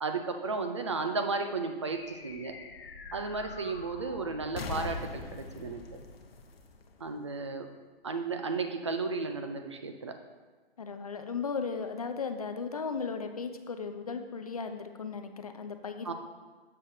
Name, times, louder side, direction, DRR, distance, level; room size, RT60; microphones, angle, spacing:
voice 1, 0.0-2.6 3.1-5.8 7.0-7.7 8.0-10.1 16.0-16.1, right 4 dB, 30° right, 6 dB, 0.3 m, -34 dB
sound 1, 1.8-7.5, left 3 dB, 75° left, 0.8 m, -43 dB
voice 2, 10.8-16.1, left 5 dB, 40° left, 7 dB, 0.4 m, -36 dB
7.4 x 6.4 x 2.7 m, 1.3 s
hypercardioid pair, 165°, 30 cm